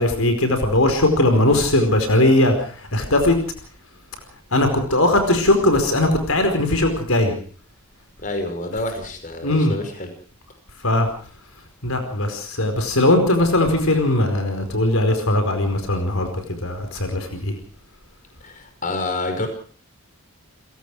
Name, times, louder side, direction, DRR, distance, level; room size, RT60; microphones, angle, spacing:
voice 1, 0.0-3.4 4.5-7.3 9.4-9.8 10.8-11.1 11.8-17.5, left 1 dB, 75° left, 7 dB, 4.8 m, -19 dB
voice 2, 8.2-10.1 18.4-19.5, left 2 dB, 40° left, 6 dB, 5.4 m, -28 dB
30.0 x 17.5 x 4.9 m, 0.43 s
head